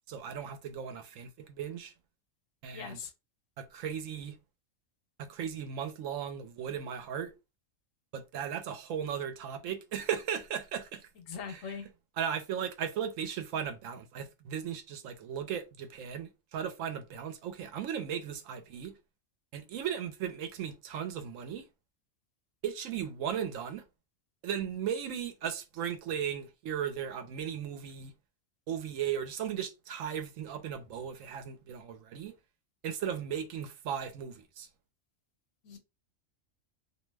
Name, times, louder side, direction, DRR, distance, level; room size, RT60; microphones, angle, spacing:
voice 1, 0.1-1.9 2.6-3.0 3.6-4.4 5.2-7.3 8.1-11.1 11.5-11.6 12.2-18.9 19.5-21.6 22.6-23.8 24.4-28.1 28.7-32.4 32.8-34.7, right 8 dB, 80° right, 1.0 m, -36 dB
voice 2, 2.7-3.1 11.3-11.9 35.6-35.8, left 6 dB, 80° left, 1.0 m, -41 dB
2.5 x 2.1 x 3.2 m
omnidirectional pair, 1.4 m